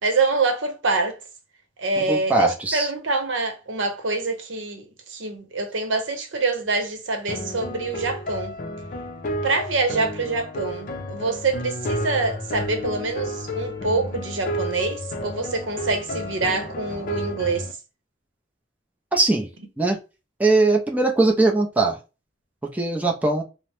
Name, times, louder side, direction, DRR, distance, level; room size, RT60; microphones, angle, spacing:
voice 1, 0.0-1.2 1.8-8.6 9.4-17.7, right 3 dB, 85° right, 0.8 m, -25 dB
voice 2, 2.1-2.9 19.1-19.5 19.8-20.0 20.4-22.0 22.7-23.4, right 3 dB, 10° right, 0.5 m, -20 dB
sound 1, 7.3-17.7, left 1 dB, 45° left, 0.5 m, -31 dB
2.8 x 2.0 x 3.2 m
head